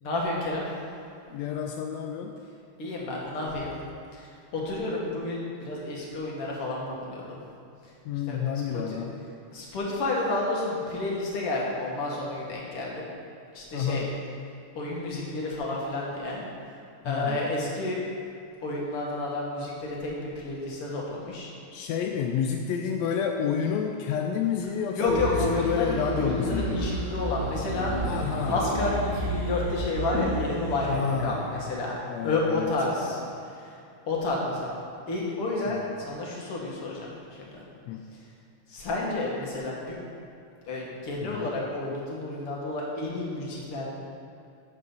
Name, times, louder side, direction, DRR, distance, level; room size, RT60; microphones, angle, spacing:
voice 1, 0.0-0.7 2.8-3.7 4.1-7.4 8.3-8.5 8.7-9.0 9.5-13.0 13.5-14.1 14.8-16.4 17.0-18.0 18.6-21.5 24.9-27.9 28.4-33.2 34.1-34.7 35.1-37.1 37.4-37.6 38.7-40.0 40.7-43.9, left 2 dB, 50° left, -3 dB, 2.4 m, -30 dB
voice 2, 1.3-2.4 8.0-9.1 13.7-14.2 17.0-17.5 21.7-26.9 28.0-28.6 30.9-31.6 32.1-33.4 35.7-36.0 37.9-38.0 41.2-41.5, left 7 dB, 80° left, 3 dB, 1.6 m, -30 dB
sound 1, 25.1-32.0 32.5-32.6, right 1 dB, 30° right, 2.1 m, -32 dB
12.5 x 7.7 x 3.9 m, 2.5 s
omnidirectional pair, 3.5 m